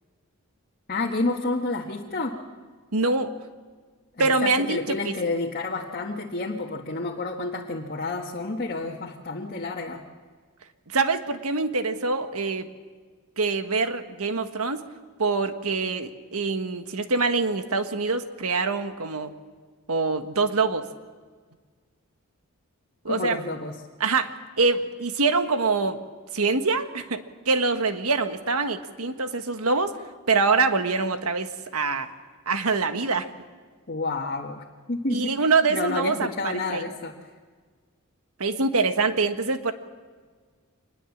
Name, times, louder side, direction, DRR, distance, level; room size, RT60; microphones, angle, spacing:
voice 1, 0.9-2.4 4.2-10.0 23.1-23.8 33.9-37.1, left 3 dB, 45° left, -1 dB, 1.6 m, -30 dB
voice 2, 2.9-3.3 4.2-5.1 10.9-12.7 13.4-14.8 15.2-19.3 19.9-20.8 23.0-23.4 24.0-24.3 24.6-26.0 26.3-29.9 30.3-32.1 32.5-33.3 35.1-36.8 38.4-39.7, right 4 dB, 85° right, 8 dB, 1.5 m, -24 dB
25.5 x 20.5 x 7.3 m, 1.5 s
head